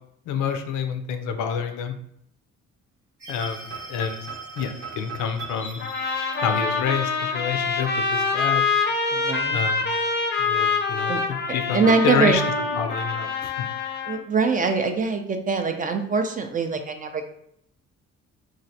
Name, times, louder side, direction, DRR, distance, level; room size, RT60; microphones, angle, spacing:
voice 1, 0.3-1.9 3.3-4.3 4.6-5.8 6.4-8.6 9.5-9.8 10.4-12.4 12.7-13.7, left 7 dB, 85° left, 8 dB, 0.5 m, -28 dB
sound 1, 3.2-9.4, equal, 90° right, 1.2 m, -44 dB
sound 2, 3.4-7.2, right 6 dB, 50° right, 0.7 m, -40 dB
sound 3, 5.8-14.2, left 4 dB, 35° left, 0.5 m, -25 dB
voice 2, 9.1-9.6 11.1-11.2 11.7-12.4 14.1-17.2, right 4 dB, 30° right, 6 dB, 0.3 m, -23 dB
3.1 x 2.4 x 2.6 m, 0.73 s
cardioid pair, 90°, 30 cm